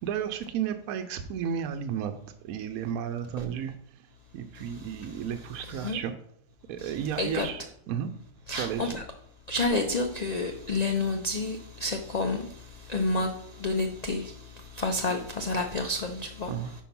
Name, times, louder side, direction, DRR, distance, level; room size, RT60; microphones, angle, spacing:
voice 1, 0.0-2.1 2.4-3.7 4.3-6.1 6.7-8.1 8.5-9.0 16.5-16.7, right 9 dB, 85° right, 1.0 m, -33 dB
voice 2, 5.6-6.0 6.8-7.5 8.5-9.0 9.5-12.5 12.9-13.3 13.6-14.3 14.7-16.7, left 2 dB, 70° left, 0.4 m, -29 dB
5.4 x 4.5 x 5.9 m
omnidirectional pair, 1.5 m